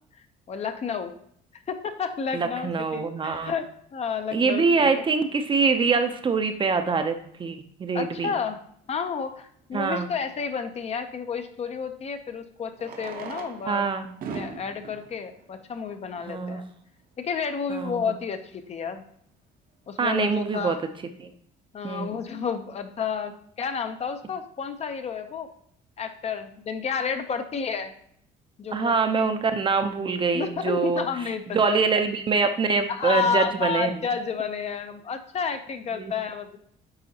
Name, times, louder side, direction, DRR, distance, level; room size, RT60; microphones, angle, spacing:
voice 1, 0.5-1.1 1.5-5.0 7.9-8.6 8.9-13.8 14.3-16.7 17.2-19.0 19.9-20.8 21.7-25.5 26.0-27.9 28.6-28.9 30.3-31.8 32.9-36.6, left 6 dB, 40° left, 8 dB, 0.6 m, -31 dB
voice 2, 2.3-3.5 4.3-8.3 9.7-10.1 13.7-14.1 16.2-16.6 17.7-18.0 20.0-20.8 21.2-21.3 21.8-22.2 28.7-31.0 31.5-34.1 36.0-36.1, right 4 dB, 30° right, 7 dB, 0.6 m, -24 dB
Fireworks, 9.2-9.3 11.6-11.7 12.7-16.5 17.2-17.3 17.5-17.6 17.8-17.9 18.5-18.7, right 6 dB, 60° right, 0.8 m, -40 dB
9.6 x 3.7 x 2.8 m, 0.66 s
cardioid pair, 110°, 17 cm